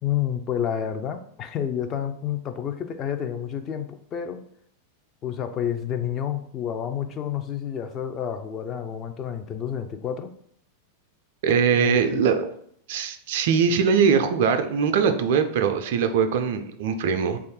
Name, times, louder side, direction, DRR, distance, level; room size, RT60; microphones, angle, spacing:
voice 1, 0.0-4.4 5.2-10.3 11.7-12.2, left 9 dB, 30° left, 7 dB, 0.4 m, -29 dB
voice 2, 11.4-12.5 12.9-17.4, right 6 dB, 55° right, 8 dB, 0.3 m, -21 dB
3.1 x 2.4 x 4.3 m, 0.66 s
figure-of-eight pair, 90°, 0 cm